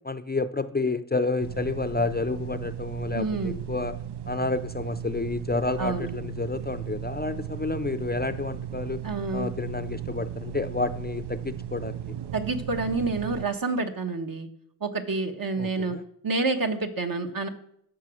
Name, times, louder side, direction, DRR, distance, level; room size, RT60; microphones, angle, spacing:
voice 1, 0.1-4.0 4.3-9.0 9.3-12.0 15.6-16.0, left 3 dB, 25° left, 12 dB, 0.5 m, -30 dB
sound 1, 1.4-13.5, right 10 dB, 75° right, 0.5 m, -36 dB
voice 2, 3.1-3.6 5.8-6.1 9.0-9.5 12.3-14.5 14.8-16.0 16.2-17.5, right 3 dB, 55° right, 6 dB, 1.3 m, -28 dB
12.5 x 6.2 x 6.3 m, 0.71 s
wide cardioid pair, 70°, 40 cm